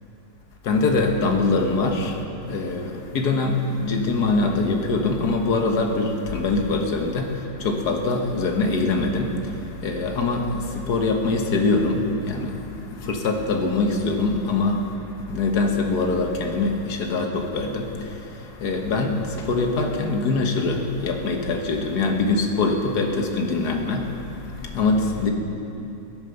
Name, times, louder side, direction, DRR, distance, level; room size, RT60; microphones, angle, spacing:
voice 1, 0.6-25.3, left 3 dB, 65° left, 3 dB, 1.8 m, -23 dB
21.5 x 8.8 x 5.8 m, 2.8 s
omnidirectional pair, 1.9 m